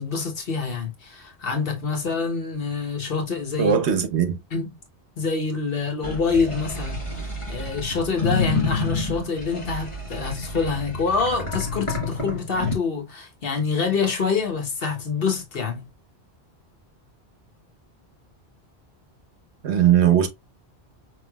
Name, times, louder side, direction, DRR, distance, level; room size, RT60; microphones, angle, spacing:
voice 1, 0.0-3.7 4.5-4.8 5.2-15.9, left 5 dB, 60° left, 1.3 m, -26 dB
voice 2, 3.6-4.4 19.6-20.3, right 9 dB, 80° right, 1.1 m, -19 dB
sound 1, 6.0-12.8, left 3 dB, 30° left, 1.1 m, -29 dB
5.4 x 3.3 x 2.3 m
omnidirectional pair, 1.1 m